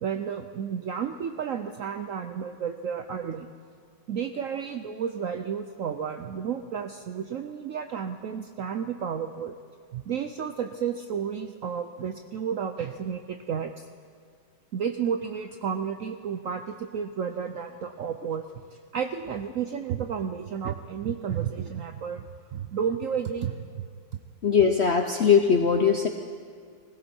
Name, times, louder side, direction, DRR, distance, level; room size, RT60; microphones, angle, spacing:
voice 1, 0.0-3.5 4.1-9.5 9.9-13.9 14.7-18.5 18.9-23.8, right 7 dB, 70° right, 7 dB, 0.8 m, -32 dB
voice 2, 24.4-26.1, left 6 dB, 60° left, 5 dB, 0.7 m, -20 dB
20.5 x 16.0 x 4.4 m, 2.1 s
omnidirectional pair, 2.0 m